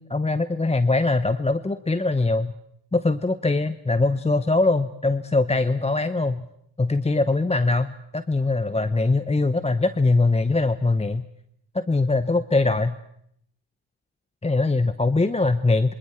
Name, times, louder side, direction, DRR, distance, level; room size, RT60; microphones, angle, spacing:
voice 1, 0.0-2.5 2.9-6.5 6.8-11.2 11.7-13.0 14.4-15.9, left 3 dB, 15° left, 13 dB, 0.8 m, -22 dB
27.5 x 25.5 x 4.4 m, 0.72 s
supercardioid pair, 55°, 49 cm